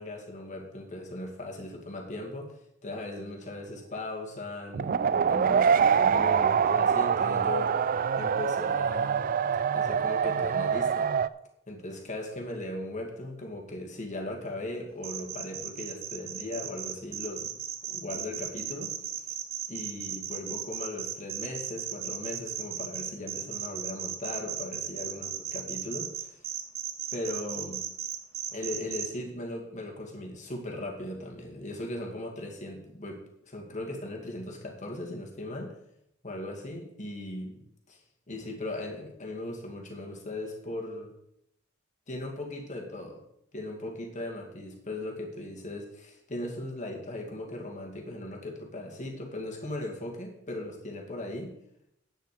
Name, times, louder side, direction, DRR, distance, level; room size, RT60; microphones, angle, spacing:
voice 1, 0.0-2.6 2.8-7.8 8.1-9.2 9.7-11.1 11.7-17.6 17.9-18.9 19.7-26.5 27.1-27.8 28.5-35.8 36.2-38.0 38.3-41.1 42.1-43.2 43.5-51.5, left 1 dB, 35° left, 1 dB, 2.3 m, -38 dB
sound 1, 4.7-11.3, right 7 dB, 40° right, 0.3 m, -25 dB
sound 2, 15.0-29.1, right 9 dB, 70° right, 1.3 m, -35 dB
10.5 x 9.0 x 5.0 m, 0.78 s
head